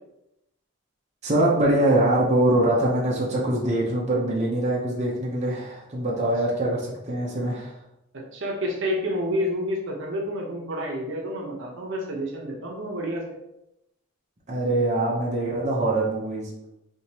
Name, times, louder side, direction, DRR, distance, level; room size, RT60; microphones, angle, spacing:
voice 1, 1.2-7.8 14.5-16.7, right 1 dB, 30° right, -5 dB, 0.7 m, -23 dB
voice 2, 8.3-13.2, equal, 60° right, -1 dB, 0.8 m, -29 dB
5.1 x 2.9 x 2.8 m, 0.87 s
head